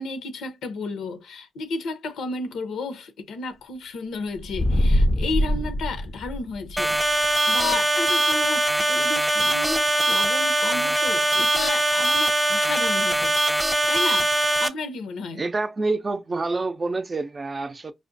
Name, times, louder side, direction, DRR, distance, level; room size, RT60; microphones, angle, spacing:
voice 1, 0.0-7.0 7.5-13.3 13.9-15.4, left 3 dB, 80° left, 0.6 m, -32 dB
sound 1, 4.4-6.8, left 1 dB, 25° left, 0.4 m, -22 dB
sound 2, 6.8-14.7, right 1 dB, 10° right, 0.8 m, -22 dB
voice 2, 15.4-17.9, right 3 dB, 40° right, 0.5 m, -27 dB
4.8 x 2.1 x 2.5 m
supercardioid pair, 45°, 0 cm